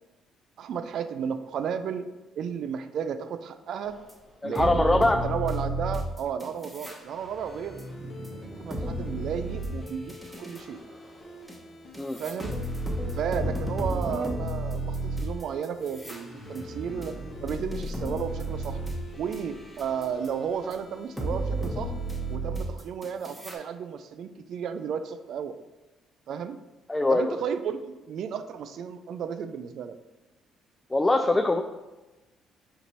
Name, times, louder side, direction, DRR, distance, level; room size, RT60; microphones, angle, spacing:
voice 1, 0.6-2.0 2.4-4.0 4.4-7.8 8.6-10.8 12.2-12.6 13.2-18.8 19.2-21.9 22.3-25.6 26.3-26.6 27.1-30.0, right 7 dB, 65° right, 10 dB, 0.3 m, -33 dB
sound 1, 4.1-4.2 4.5-7.0 7.3-10.6 11.5-11.6 11.9-19.4 19.8-20.3 20.7-20.8 21.2-23.5, right 1 dB, ahead, 1.0 m, -32 dB
voice 2, 4.4-5.2 12.0-12.2 26.9-27.4 30.9-31.6, left 2 dB, 15° left, 4 dB, 0.3 m, -22 dB
sound 2, 7.5-22.4, equal, 45° left, 0.8 m, -49 dB
4.5 x 2.5 x 4.1 m, 1.1 s
supercardioid pair, 60°, 0 cm